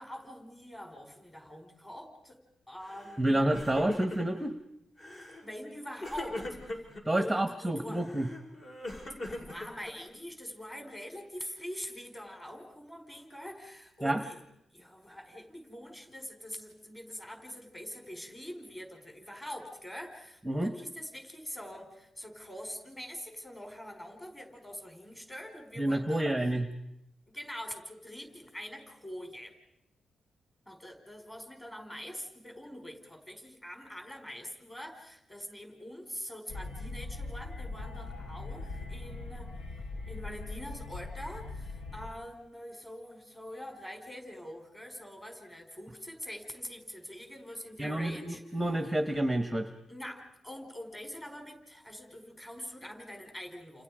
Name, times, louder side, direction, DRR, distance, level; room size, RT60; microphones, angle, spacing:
voice 1, 0.0-2.4 2.7-3.3 5.4-6.8 7.1-8.1 9.3-14.4 14.7-26.3 27.3-29.5 30.7-39.5 40.1-48.6 49.9-53.8, equal, 15° left, 4 dB, 4.9 m, -44 dB
Crying sobbing, 2.9-3.2 3.4-4.5 5.0-5.4 6.0-7.0 7.9-10.2, left 1 dB, 40° left, 6.3 m, -40 dB
voice 2, 3.2-4.5 7.1-8.3 14.0-14.2 20.4-20.7 25.8-26.7 47.8-49.7, right 1 dB, 5° right, 8 dB, 1.2 m, -29 dB
sound 1, 36.5-42.1, left 3 dB, 90° left, 3.3 m, -41 dB
29.5 x 29.5 x 5.0 m, 0.83 s
wide cardioid pair, 135°, 0 cm